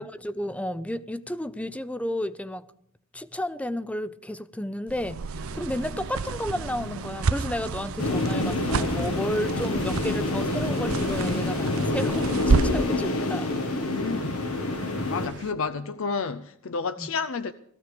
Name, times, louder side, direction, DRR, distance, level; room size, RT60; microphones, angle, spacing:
voice 1, 0.0-2.7 3.1-13.5 17.0-17.1, left 1 dB, 5° left, 0.5 m, -32 dB
sound 1, 4.9-13.0, right 4 dB, 75° right, 0.6 m, -30 dB
sound 2, 5.3-15.5, right 3 dB, 55° right, 1.4 m, -45 dB
sound 3, 8.0-15.3, left 2 dB, 80° left, 1.5 m, -27 dB
voice 2, 13.8-14.4 15.1-17.5, left 5 dB, 65° left, 0.5 m, -31 dB
18.0 x 14.5 x 5.1 m
head